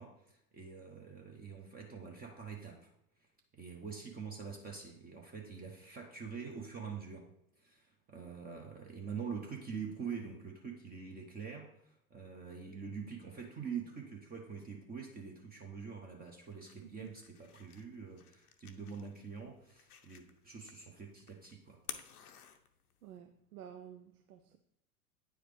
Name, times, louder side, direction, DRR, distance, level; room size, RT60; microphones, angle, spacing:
voice 1, 0.0-2.9 3.6-7.3 7.6-21.8, right 6 dB, 20° right, 1 dB, 0.9 m, -45 dB
sound 1, 16.2-23.2, left 8 dB, 80° left, 0.7 m, -53 dB
voice 2, 23.0-24.6, right 10 dB, 75° right, 7 dB, 0.6 m, -51 dB
9.0 x 4.9 x 3.3 m, 0.77 s
figure-of-eight pair, 90°, 45 cm